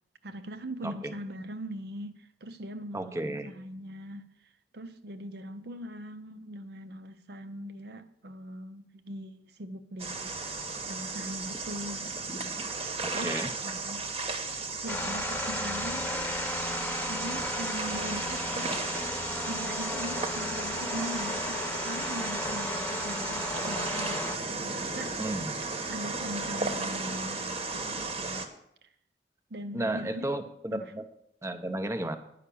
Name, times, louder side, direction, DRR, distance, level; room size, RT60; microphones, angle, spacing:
voice 1, 0.2-4.3 4.7-10.6 10.9-12.6 13.1-14.0 14.8-16.3 17.1-18.7 19.5-25.2 25.9-28.5 29.5-30.3 30.7-30.9, equal, 65° right, 0.8 m, -41 dB
voice 2, 0.8-1.1 2.9-3.5 13.0-13.5 25.2-25.6 26.6-26.7 29.7-31.0 31.4-32.2, right 1 dB, 15° right, 0.7 m, -33 dB
sound 1, 10.0-28.5, right 3 dB, 35° right, 1.1 m, -35 dB
sound 2, 14.9-24.4, left 2 dB, 10° left, 1.0 m, -34 dB
10.0 x 5.8 x 8.5 m
head